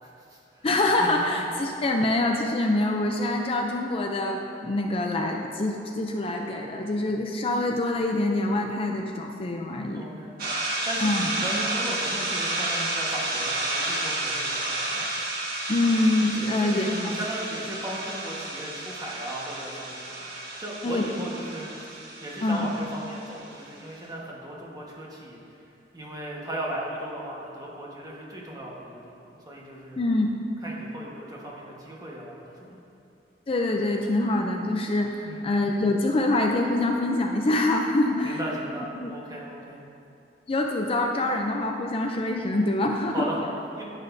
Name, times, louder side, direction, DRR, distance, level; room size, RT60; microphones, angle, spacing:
voice 1, 0.0-0.7 1.0-1.1 9.9-10.3 10.8-15.1 16.5-20.2 20.6-21.7 22.2-25.4 25.9-30.0 30.6-32.8 35.2-35.5 38.2-39.8 43.1-43.8, right 1 dB, 20° right, -3 dB, 1.3 m, -36 dB
voice 2, 0.6-10.0 11.0-11.2 15.7-16.9 20.8-21.1 22.4-22.7 30.0-30.4 33.5-38.4 39.0-39.1 40.5-43.3, left 2 dB, 30° left, 2 dB, 0.5 m, -25 dB
sound 1, 10.4-23.7, right 2 dB, 55° right, 1.6 m, -31 dB
10.5 x 9.0 x 2.7 m, 2.6 s
head